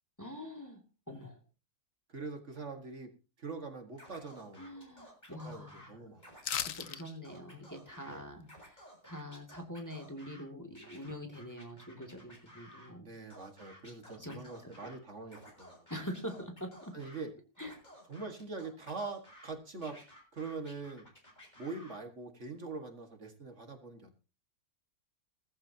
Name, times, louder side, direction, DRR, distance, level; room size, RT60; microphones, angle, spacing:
voice 1, 0.2-1.4 4.6-6.0 6.6-13.1 14.2-14.9 15.9-16.9 17.6-17.8, equal, 10° left, 2 dB, 2.4 m, -44 dB
voice 2, 2.1-3.1 3.4-4.9 5.3-6.3 8.1-8.3 10.7-10.9 13.0-15.9 16.9-17.3 18.1-20.0 20.3-21.1 21.6-24.1, right 4 dB, 55° right, 5 dB, 2.2 m, -43 dB
Scratching (performance technique), 4.0-5.9 6.2-8.2 8.4-10.4 10.8-12.9 13.3-15.0 15.3-17.2 17.6-19.5 19.8-22.0, equal, 30° left, 7.2 m, -55 dB
sound 1, 6.4-7.0 7.4-7.5, left 9 dB, 65° left, 1.2 m, -35 dB
19.0 x 14.5 x 2.9 m, 0.33 s
omnidirectional pair, 1.5 m